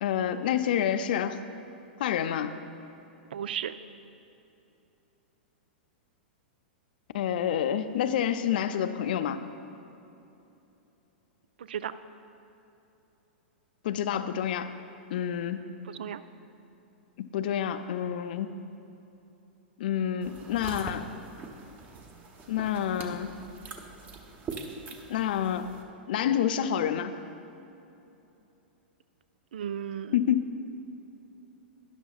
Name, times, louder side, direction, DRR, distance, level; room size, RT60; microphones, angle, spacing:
voice 1, 0.0-1.4 2.0-2.5 7.1-9.4 13.8-14.7 15.1-15.6 17.2-18.5 19.8-21.0 22.5-23.3 25.1-25.7 26.1-27.1 30.1-30.5, left 9 dB, 60° left, 10 dB, 0.5 m, -28 dB
voice 2, 3.3-3.7 11.6-11.9 15.9-16.2 29.5-30.2, right 9 dB, 70° right, 13 dB, 0.4 m, -35 dB
sound 1, 20.2-25.8, right 4 dB, 25° right, 1.0 m, -43 dB
12.5 x 10.5 x 2.4 m, 2.8 s
hypercardioid pair, 105°, 6 cm